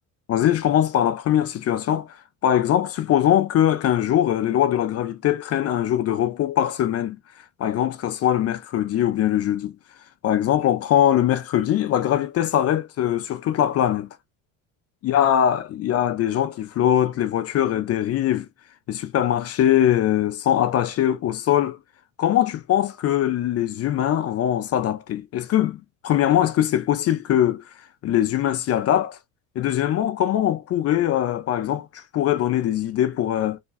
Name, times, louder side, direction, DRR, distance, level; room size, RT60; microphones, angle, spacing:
voice 1, 0.3-2.2 2.4-7.2 7.6-9.7 10.2-14.1 15.0-18.5 18.9-21.8 22.2-27.6 28.0-29.2 29.6-33.6, left 11 dB, 35° left, 0.4 m, -22 dB
3.2 x 2.3 x 2.5 m
hypercardioid pair, 80°, 43 cm